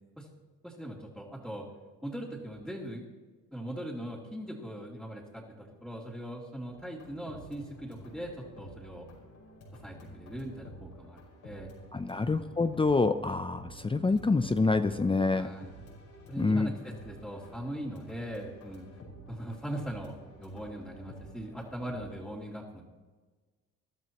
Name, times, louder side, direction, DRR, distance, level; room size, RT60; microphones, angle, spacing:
voice 1, 0.6-1.7 2.0-3.0 3.5-9.1 9.8-11.7 12.2-12.5 15.3-15.7 16.3-18.9 19.3-22.8, equal, ahead, -7 dB, 2.9 m, -40 dB
sound 1, 6.7-22.1, equal, 85° left, 5.0 m, -50 dB
voice 2, 11.9-15.5 16.4-16.7, left 3 dB, 15° left, 9 dB, 0.6 m, -27 dB
21.0 x 12.5 x 3.0 m, 1.3 s
cardioid pair, 90°, 30 cm